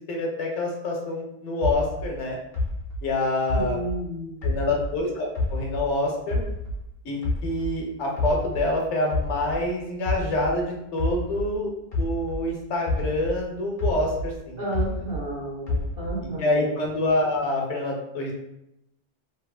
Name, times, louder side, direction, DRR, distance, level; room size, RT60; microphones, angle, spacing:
voice 1, 0.1-2.4 3.0-3.8 4.4-6.4 7.0-11.7 12.0-14.6 16.4-18.3, left 2 dB, 80° left, -1 dB, 1.0 m, -26 dB
sound 1, 1.6-5.0 5.4-7.8 8.2-12.5 12.9-15.3 15.7-16.4, left 2 dB, 60° left, 0.9 m, -29 dB
voice 2, 3.5-4.5 14.6-16.8, right 1 dB, 55° right, -6 dB, 1.2 m, -32 dB
2.9 x 2.4 x 2.3 m, 0.84 s
omnidirectional pair, 1.2 m